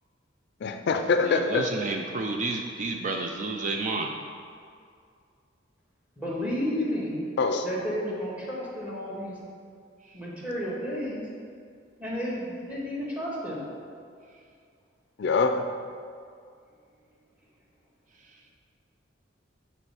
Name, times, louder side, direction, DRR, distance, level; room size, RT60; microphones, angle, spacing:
voice 1, 0.6-1.7 7.4-7.7 15.2-15.7, left 4 dB, 60° left, 6 dB, 0.4 m, -24 dB
voice 2, 1.2-4.1, right 3 dB, 40° right, 3 dB, 0.4 m, -30 dB
voice 3, 6.2-7.2 7.6-9.4 10.1-11.3 12.0-13.7, equal, 5° right, -5 dB, 1.5 m, -32 dB
7.5 x 4.2 x 4.8 m, 2.3 s
head